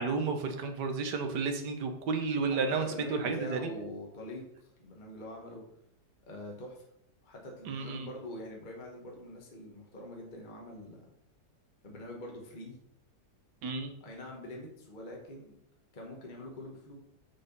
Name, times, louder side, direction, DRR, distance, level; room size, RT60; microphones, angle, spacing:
voice 1, 0.0-3.7 7.7-8.1 13.6-13.9, right 4 dB, 80° right, 6 dB, 1.7 m, -32 dB
voice 2, 2.4-5.7 6.3-6.8 7.2-11.0 11.8-12.8 14.0-15.5 15.9-17.0, left 1 dB, 30° left, 0 dB, 1.4 m, -44 dB
6.6 x 5.8 x 5.3 m, 0.75 s
omnidirectional pair, 1.8 m